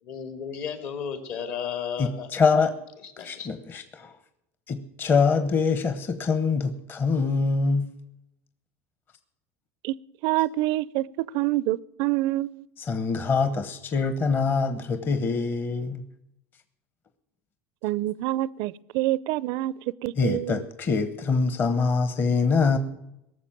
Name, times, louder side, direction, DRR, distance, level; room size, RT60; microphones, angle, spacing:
voice 1, 0.0-2.3 3.2-3.5, left 7 dB, 60° left, 2.6 m, -33 dB
voice 2, 2.0-2.7 3.2-4.1 4.7-7.9 12.9-16.0 20.2-22.8, left 4 dB, 30° left, 1.0 m, -24 dB
voice 3, 10.2-12.6 17.8-19.7 20.0-20.6, right 16 dB, 65° right, 0.5 m, -26 dB
18.5 x 7.0 x 9.0 m
supercardioid pair, 135°, 7 cm